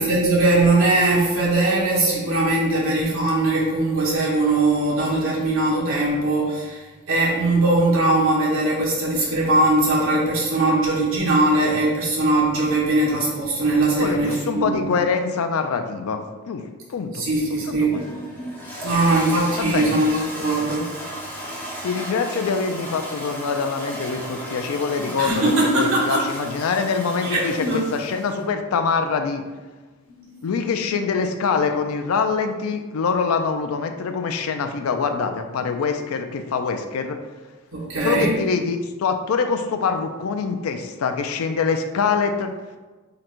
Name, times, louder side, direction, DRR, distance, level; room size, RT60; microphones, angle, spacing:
voice 1, 0.0-14.9 17.1-18.0 18.8-20.9 25.2-26.3 27.2-27.9 30.2-30.3 37.7-38.3, right 2 dB, 70° right, -5 dB, 1.3 m, -20 dB
voice 2, 14.0-16.6 16.9-17.3 17.7-18.0 19.6-20.0 21.8-29.4 30.4-37.2 38.0-42.5, left 5 dB, 90° left, 6 dB, 0.4 m, -24 dB
Toilet flush, 17.4-28.5, equal, 10° left, 0.5 m, -35 dB
3.8 x 2.2 x 4.3 m, 1.3 s
head